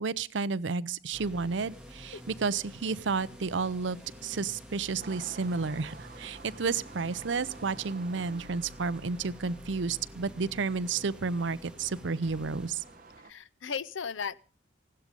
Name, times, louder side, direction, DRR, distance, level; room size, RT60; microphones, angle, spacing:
voice 1, 0.0-4.0 4.2-12.8, right 4 dB, 70° right, 17 dB, 0.6 m, -31 dB
sound 1, 1.1-13.2, equal, 5° right, 1.8 m, -49 dB
sound 2, 1.7-7.9, left 2 dB, 35° left, 7.9 m, -64 dB
sound 3, 5.0-13.3, right 4 dB, 50° right, 1.2 m, -52 dB
voice 2, 13.2-14.4, left 6 dB, 85° left, 18 dB, 0.7 m, -36 dB
16.5 x 12.5 x 5.3 m, 0.41 s
head